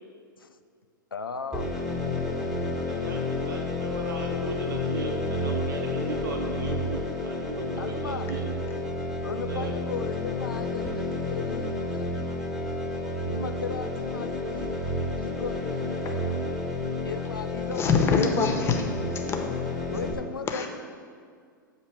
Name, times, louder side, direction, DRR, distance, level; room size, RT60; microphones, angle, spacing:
voice 1, 1.1-1.7 7.8-8.3 9.2-12.1 13.2-14.8 15.2-16.3 17.0-17.8 19.9-20.7, left 5 dB, 90° left, 9 dB, 0.4 m, -36 dB
sound 1, 1.5-20.2, left 2 dB, 5° right, 1.0 m, -30 dB
voice 2, 2.9-8.5 9.5-9.7, right 2 dB, 70° right, 2 dB, 0.8 m, -37 dB
voice 3, 17.8-18.9 19.1-19.4 20.5-20.7, left 5 dB, 20° left, 3 dB, 0.7 m, -24 dB
7.3 x 2.8 x 5.8 m, 2.1 s
figure-of-eight pair, 105°, 11 cm